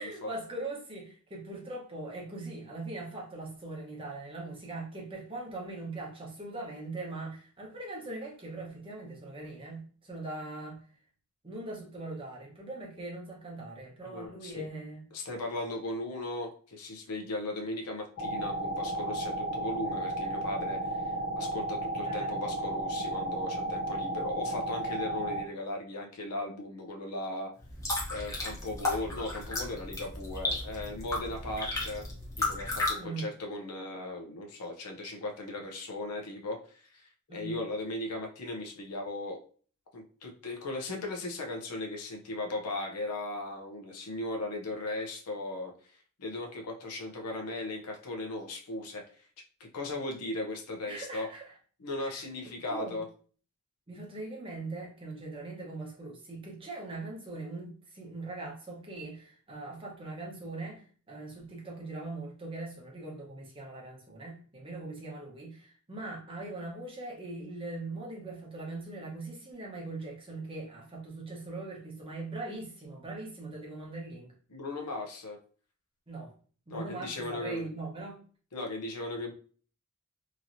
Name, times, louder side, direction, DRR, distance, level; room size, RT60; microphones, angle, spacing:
voice 1, 0.0-10.9 11.4-15.1 22.0-22.3 33.0-33.3 37.3-37.6 50.8-51.4 52.0-52.2 52.7-53.0 53.9-74.3 76.1-76.3 76.7-78.2, right 2 dB, 25° right, -2 dB, 1.0 m, -41 dB
voice 2, 14.0-14.6 15.1-27.5 28.1-32.1 32.4-39.4 39.9-45.7 46.2-49.0 49.6-51.3 51.8-53.1 74.5-75.4 76.7-77.7 78.5-79.3, left 2 dB, 90° left, 1 dB, 0.7 m, -37 dB
sound 1, 18.2-25.4, right 1 dB, 50° left, 0.7 m, -33 dB
sound 2, 27.6-32.9, left 2 dB, 15° left, 0.8 m, -34 dB
3.0 x 2.7 x 2.6 m, 0.42 s
head